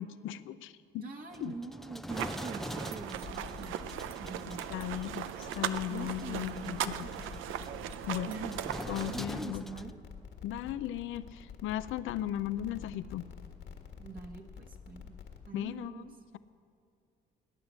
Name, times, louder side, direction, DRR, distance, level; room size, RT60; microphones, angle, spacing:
voice 1, 0.0-1.1 1.4-1.5 4.7-7.1 8.1-8.3 8.9-9.7 10.4-13.2 15.5-16.4, left 12 dB, 90° left, 14 dB, 0.6 m, -37 dB
voice 2, 1.0-3.9 4.2-4.7 5.9-7.5 8.3-8.6 9.1-10.0 14.0-15.2 15.5-16.1, right 4 dB, 45° right, 1 dB, 1.5 m, -44 dB
sound 1, 1.3-9.9, equal, ahead, 0.5 m, -45 dB
sound 2, 2.1-9.2, right 11 dB, 90° right, 0.6 m, -38 dB
sound 3, 3.0-15.5, left 6 dB, 65° left, 1.8 m, -48 dB
17.5 x 9.8 x 8.2 m, 2.5 s
cardioid pair, 90°, 20 cm